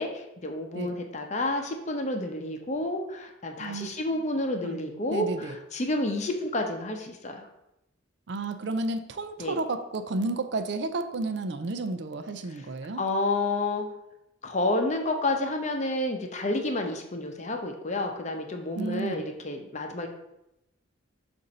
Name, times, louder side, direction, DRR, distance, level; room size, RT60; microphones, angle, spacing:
voice 1, 0.0-7.5 9.4-9.6 13.0-13.9 14.4-20.1, left 2 dB, 35° left, 4 dB, 0.7 m, -30 dB
voice 2, 3.6-3.9 4.6-4.8 5.1-5.6 8.3-13.0 18.7-19.2, right 2 dB, 60° right, 9 dB, 0.4 m, -32 dB
6.9 x 2.6 x 5.3 m, 0.86 s
head